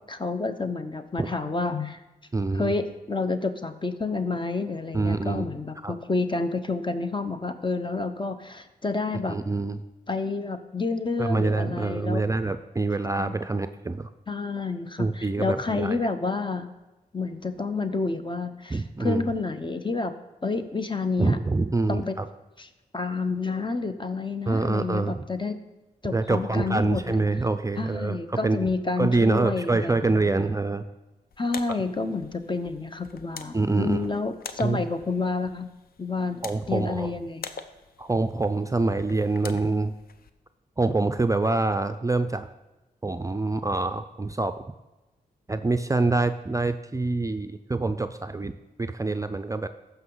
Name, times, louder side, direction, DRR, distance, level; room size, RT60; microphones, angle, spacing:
voice 1, 0.1-2.0 2.5-9.4 10.1-12.3 13.2-13.3 14.3-16.7 17.1-20.1 20.4-21.4 21.9-22.2 22.6-22.7 22.9-25.6 26.0-27.2 27.8-30.5 31.4-35.7 36.0-36.4 36.7-37.5, left 3 dB, 30° left, 9 dB, 0.9 m, -29 dB
voice 2, 2.3-2.7 4.9-5.5 5.8-5.9 9.3-9.8 11.2-14.1 15.0-16.1 18.7-19.3 21.2-22.2 24.5-25.2 26.1-28.7 29.0-30.8 31.7-31.8 33.5-34.1 34.6-34.8 36.4-37.1 38.0-39.9 40.8-42.5 43.0-44.5 45.5-49.7, right 3 dB, 20° right, 9 dB, 0.5 m, -26 dB
sound 1, 31.3-40.3, left 6 dB, 65° left, 0.6 m, -45 dB
14.5 x 5.7 x 3.9 m, 1.1 s
cardioid pair, 50°, 17 cm